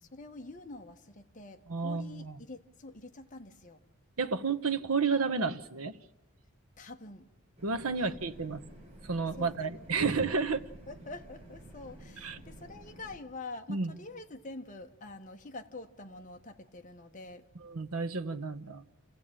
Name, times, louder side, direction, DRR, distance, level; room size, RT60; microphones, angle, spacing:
voice 1, 0.0-3.8 6.8-7.3 8.0-8.1 9.4-9.9 10.9-17.4, left 2 dB, 35° left, 5 dB, 1.3 m, -46 dB
voice 2, 1.7-2.4 4.2-6.0 7.6-8.6 9.0-10.6 12.2-12.4 13.7-14.0 17.6-18.8, right 4 dB, 85° right, 12 dB, 1.0 m, -31 dB
sound 1, 7.6-13.2, right 1 dB, 30° right, 3.5 m, -51 dB
27.5 x 15.0 x 8.8 m, 1.1 s
head